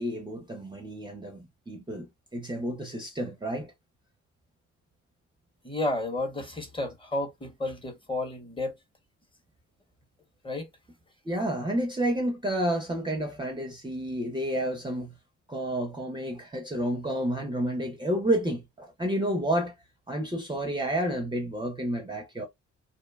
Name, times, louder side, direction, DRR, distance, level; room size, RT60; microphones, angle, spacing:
voice 1, 0.0-3.7 11.2-15.1 15.5-19.7 20.1-22.5, right 1 dB, 15° right, 0.5 m, -30 dB
voice 2, 5.6-8.7 10.4-10.7, left 2 dB, 15° left, 0.8 m, -32 dB
2.5 x 2.2 x 2.2 m
cardioid pair, 90°, 30 cm